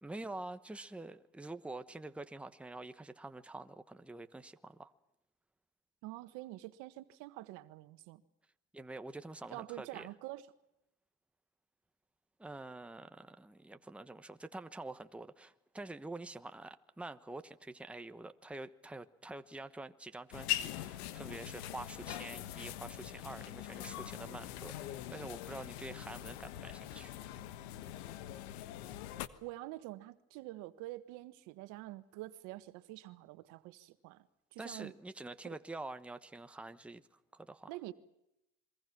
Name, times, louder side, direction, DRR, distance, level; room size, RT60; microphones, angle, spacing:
voice 1, 0.0-4.9 8.7-10.1 12.4-27.1 34.6-37.0 37.3-37.7, right 2 dB, 5° right, 1.1 m, -47 dB
voice 2, 6.0-8.2 9.5-10.5 29.4-34.9 35.4-35.6 37.7-37.9, right 17 dB, 70° right, 1.6 m, -47 dB
sound 1, 20.3-29.3, left 13 dB, 85° left, 1.4 m, -42 dB
27.0 x 23.0 x 6.1 m
supercardioid pair, 105°, 31 cm